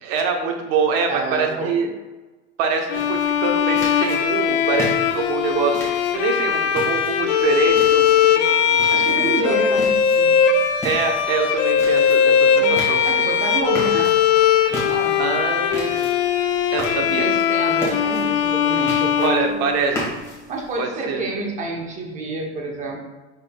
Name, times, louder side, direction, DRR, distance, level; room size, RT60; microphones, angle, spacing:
voice 1, 0.0-1.9 2.6-5.8 6.1-9.5 10.8-13.0 15.2-16.1 16.7-17.3 19.2-20.0 20.8-21.2, right 5 dB, 65° right, 3 dB, 0.8 m, -24 dB
voice 2, 1.1-1.8 8.9-10.5 12.5-12.7 13.0-14.2 14.7-15.4 16.9-20.0 20.5-23.0, right 3 dB, 25° right, 1 dB, 0.7 m, -29 dB
Bowed string instrument, 2.9-20.1, left 8 dB, 90° left, 0.5 m, -19 dB
sound 1, 2.9-20.8, left 1 dB, 10° left, 1.1 m, -36 dB
5.4 x 3.8 x 2.2 m, 1.2 s
supercardioid pair, 150°, 32 cm